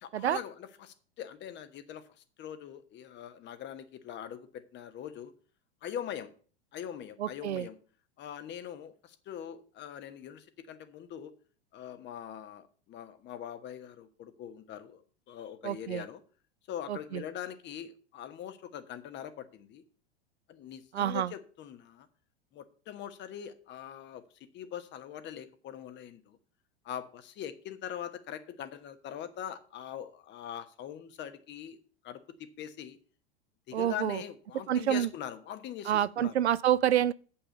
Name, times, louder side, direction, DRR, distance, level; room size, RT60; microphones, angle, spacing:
voice 1, 0.0-5.3 5.8-6.3 6.7-7.8 8.2-11.3 11.7-15.0 15.3-16.2 16.7-19.8 20.5-22.1 22.5-24.2 24.5-26.4 26.8-31.8 32.0-32.2 32.6-33.0 33.7-36.4, left 10 dB, 35° left, 1.2 m, -42 dB
voice 2, 7.2-7.7 15.6-16.0 16.9-17.2 20.9-21.3 33.7-34.2 34.7-35.1 35.9-37.1, right 11 dB, 80° right, 0.5 m, -28 dB
8.5 x 5.7 x 6.8 m
figure-of-eight pair, 90°, 33 cm